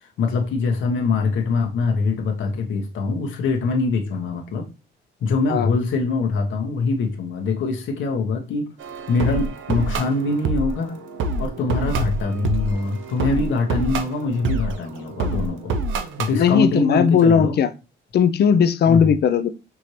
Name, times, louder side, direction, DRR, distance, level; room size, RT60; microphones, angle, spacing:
voice 1, 0.0-4.7 5.2-8.7 9.1-11.0 11.4-15.8 16.2-17.6 18.8-19.1, left 3 dB, 75° left, 2 dB, 1.2 m, -23 dB
sound 1, 8.8-16.4, right 3 dB, 80° right, 0.7 m, -27 dB
voice 2, 16.3-17.7 18.1-19.5, left 7 dB, 55° left, 11 dB, 0.6 m, -17 dB
6.0 x 2.7 x 3.1 m, 0.29 s
cardioid pair, 90°, 20 cm